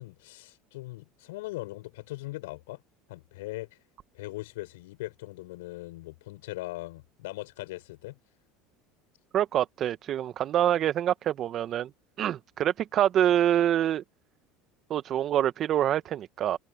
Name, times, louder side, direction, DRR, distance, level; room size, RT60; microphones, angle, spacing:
voice 1, 0.0-2.8 3.1-3.8 4.1-8.2, left 19 dB, 80° left, 7.0 m, -40 dB
voice 2, 9.3-11.9 12.2-14.0 14.9-16.6, right 11 dB, 45° right, 1.1 m, -26 dB
hypercardioid pair, 85°, 0 cm